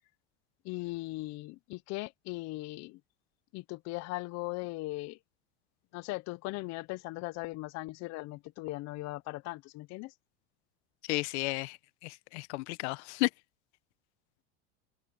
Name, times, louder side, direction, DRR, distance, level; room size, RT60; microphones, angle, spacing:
voice 1, 0.6-3.0 3.5-5.2 5.9-10.1, left 21 dB, 50° left, 0.7 m, -39 dB
voice 2, 11.1-11.8 12.0-13.3, left 22 dB, 70° left, 0.8 m, -32 dB
supercardioid pair, 125°, 35 cm